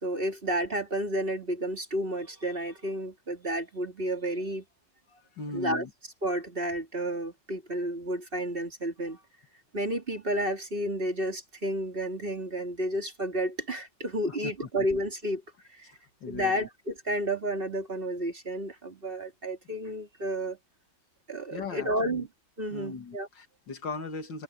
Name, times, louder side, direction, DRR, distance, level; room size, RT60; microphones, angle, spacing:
voice 1, 0.0-4.6 5.5-5.8 6.2-9.2 9.7-15.4 15.7-15.9 16.3-20.6 21.3-22.3 22.6-23.3, right 1 dB, 30° right, 2.8 m, -31 dB
voice 2, 5.1-5.9 14.3-14.7 16.2-16.5 21.5-22.3 22.7-24.4, left 4 dB, 90° left, 2.9 m, -38 dB
omnidirectional pair, 1.9 m